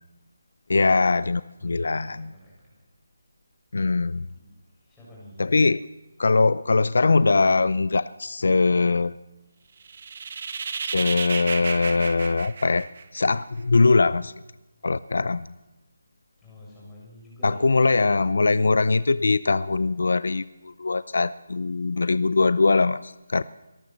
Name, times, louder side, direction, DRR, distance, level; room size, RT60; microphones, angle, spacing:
voice 1, 0.7-2.3 3.7-4.3 5.4-5.8 6.2-9.1 10.8-12.9 13.1-14.3 14.8-15.5 17.4-23.4, left 3 dB, 60° left, 17 dB, 0.6 m, -21 dB
voice 2, 1.6-2.6 3.7-5.5 16.4-18.0, left 1 dB, 5° left, -7 dB, 6.6 m, -48 dB
sound 1, 9.8-13.4, right 5 dB, 30° right, 1.5 m, -33 dB
23.5 x 18.5 x 7.5 m, 1.1 s
hypercardioid pair, 180°, 0 cm